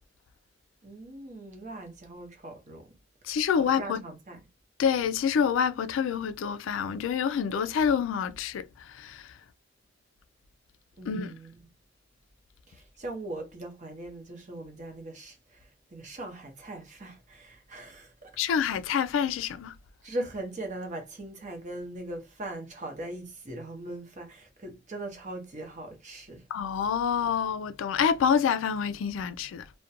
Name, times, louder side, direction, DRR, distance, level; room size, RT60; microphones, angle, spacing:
voice 1, 0.8-3.0 3.6-4.4 11.0-11.6 12.7-18.4 20.0-26.5, right 1 dB, 40° right, 0.7 m, -40 dB
voice 2, 3.2-4.0 4.8-9.3 11.1-11.3 18.4-19.7 26.5-29.7, left 7 dB, 85° left, 0.3 m, -27 dB
2.4 x 2.1 x 2.6 m
head